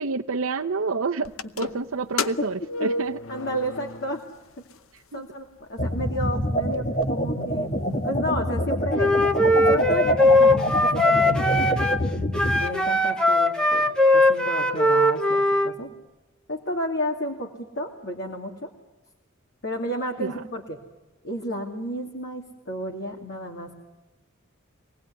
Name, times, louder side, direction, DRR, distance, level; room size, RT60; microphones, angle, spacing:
voice 1, 0.0-3.2 4.9-5.2 20.2-20.4, right 4 dB, 80° right, 2 dB, 0.8 m, -29 dB
sound 1, 1.3-4.4 4.7-4.8 5.6-5.7 6.1-6.2 6.4-7.1, left 3 dB, 75° left, 0.9 m, -32 dB
voice 2, 3.3-4.2 5.1-7.7 8.0-9.2 9.7-11.9 12.6-15.9 16.5-18.7 19.6-20.8 21.2-23.8, equal, 55° left, 1 dB, 2.5 m, -32 dB
sound 2, 5.8-12.6, equal, 35° left, 1.5 m, -26 dB
Wind instrument woodwind instrument, 8.9-12.0 12.3-15.7, left 1 dB, 5° left, 1.3 m, -20 dB
25.5 x 19.0 x 9.7 m, 1.1 s
head